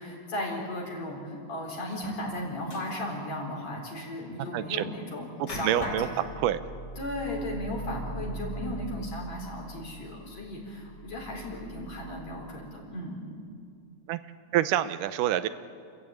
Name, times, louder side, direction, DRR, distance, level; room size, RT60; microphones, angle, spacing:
voice 1, 0.0-6.3 7.0-13.3, left 1 dB, 55° left, -1 dB, 5.5 m, -36 dB
sound 1, 1.9-2.3 2.6-3.0 5.4-5.9, left 2 dB, 35° left, 3.1 m, -42 dB
voice 2, 4.5-4.9 5.4-6.1 6.4-6.6 14.1-14.2 14.5-15.5, right 12 dB, 90° right, 12 dB, 2.3 m, -27 dB
sound 2, 5.8-12.5, right 2 dB, 10° left, 2.1 m, -41 dB
30.0 x 14.5 x 8.9 m, 2.3 s
omnidirectional pair, 3.7 m